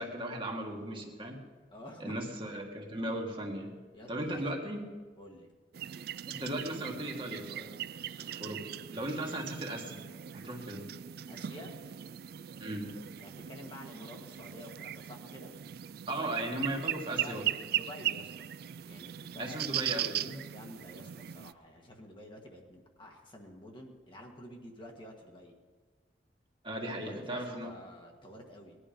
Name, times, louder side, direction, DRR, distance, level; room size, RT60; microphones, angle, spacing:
voice 1, 0.0-1.4 2.0-3.7 4.1-4.8 6.3-7.7 8.0-8.6 8.9-10.1 10.3-10.8 12.6-12.9 16.1-17.5 19.4-20.4 26.6-27.7, right 1 dB, 30° right, 0 dB, 1.8 m, -37 dB
voice 2, 1.7-2.5 3.9-4.5 5.2-5.5 11.3-11.7 13.2-15.5 16.1-16.5 17.0-18.5 18.8-19.7 20.5-25.5 26.9-28.8, left 1 dB, 30° left, 1 dB, 1.7 m, -49 dB
sound 1, 5.7-21.5, right 11 dB, 60° right, 0.3 m, -39 dB
19.5 x 11.0 x 5.2 m, 1.5 s
head